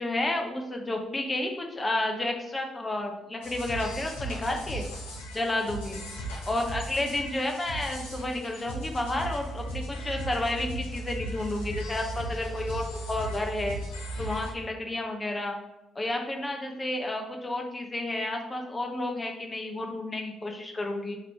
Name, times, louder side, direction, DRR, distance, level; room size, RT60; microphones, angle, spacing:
voice 1, 0.0-4.8 5.3-6.0 6.5-13.8 14.2-15.6 15.9-21.2, left 2 dB, 25° left, 2 dB, 0.8 m, -31 dB
sound 1, 3.4-14.5, right 1 dB, 85° left, 0.8 m, -37 dB
3.8 x 3.0 x 4.4 m, 0.94 s
hypercardioid pair, 45°, 0 cm